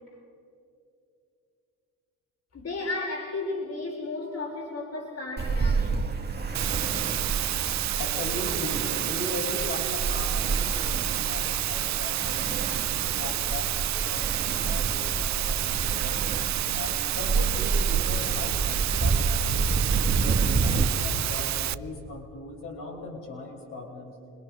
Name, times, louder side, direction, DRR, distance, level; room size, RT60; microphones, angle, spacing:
voice 1, 2.5-6.0, left 3 dB, 50° left, -2 dB, 5.2 m, -33 dB
Ocean, 5.4-20.9, right 4 dB, 30° right, 2.2 m, -29 dB
Water, 6.5-21.7, right 14 dB, 55° right, 0.6 m, -29 dB
voice 2, 8.0-12.5 13.1-16.3 16.7-24.2, left 2 dB, 70° left, -2 dB, 6.7 m, -38 dB
28.0 x 21.0 x 6.4 m, 2.5 s
cardioid pair, 80°, 33 cm